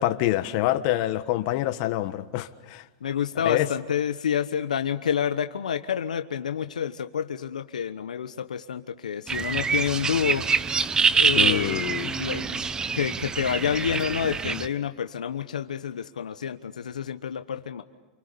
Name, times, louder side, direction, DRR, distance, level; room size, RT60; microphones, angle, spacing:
voice 1, 0.0-2.9 3.4-3.7 11.4-12.2, left 15 dB, 55° left, 1.5 m, -26 dB
voice 2, 3.0-10.5 11.2-12.7 12.9-17.8, left 8 dB, 85° left, 1.1 m, -29 dB
sound 1, 9.3-14.7, right 5 dB, 20° right, 1.1 m, -25 dB
29.5 x 28.0 x 7.0 m
hypercardioid pair, 110°, 4 cm